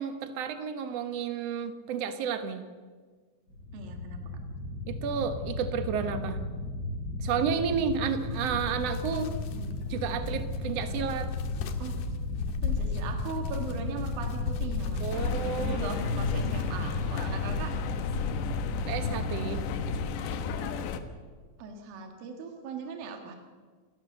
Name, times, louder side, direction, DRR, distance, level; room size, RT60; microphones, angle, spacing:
voice 1, 0.0-2.6 4.9-6.4 7.2-9.3 9.9-11.3 15.0-15.8 18.9-19.6, right 7 dB, 90° right, 8 dB, 1.4 m, -31 dB
sound 1, 3.5-20.1, left 2 dB, 25° left, 4.6 m, -35 dB
voice 2, 3.7-4.2 9.5-9.8 11.8-12.0 12.6-15.3 15.6-17.7 21.6-23.4, right 5 dB, 60° right, 3 dB, 3.5 m, -39 dB
sound 2, 7.8-17.1, left 7 dB, 75° left, 3.0 m, -37 dB
sound 3, 15.1-21.0, left 5 dB, 90° left, 3.4 m, -33 dB
28.0 x 15.0 x 6.8 m, 1.5 s
omnidirectional pair, 4.9 m